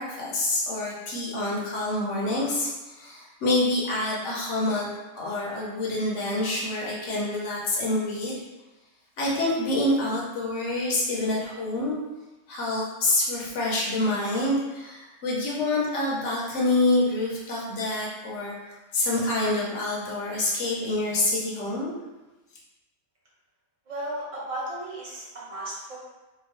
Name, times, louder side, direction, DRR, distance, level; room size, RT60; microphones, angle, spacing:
voice 1, 0.0-4.9 5.1-8.4 9.2-12.0 12.5-21.9, left 2 dB, 70° left, -4 dB, 1.0 m, -27 dB
voice 2, 23.9-26.0, right 1 dB, 30° right, -7 dB, 0.8 m, -35 dB
2.8 x 2.2 x 3.0 m, 1.1 s
omnidirectional pair, 1.3 m